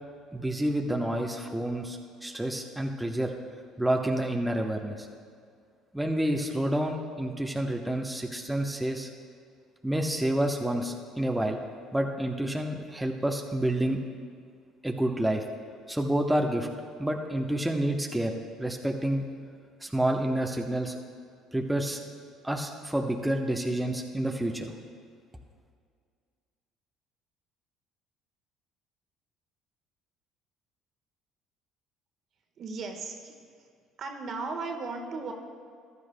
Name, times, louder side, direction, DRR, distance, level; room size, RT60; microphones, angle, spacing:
voice 1, 0.3-3.3 3.8-5.1 5.9-9.1 9.8-11.6 11.9-14.0 14.8-15.4 15.9-16.7 17.0-18.3 18.6-19.3 19.8-20.9 21.5-22.0 22.4-24.7, right 1 dB, 5° right, 1 dB, 0.9 m, -29 dB
voice 2, 32.6-33.3 34.0-35.3, right 4 dB, 55° right, 3 dB, 1.3 m, -36 dB
15.0 x 11.0 x 2.2 m, 2.1 s
hypercardioid pair, 65°, 0 cm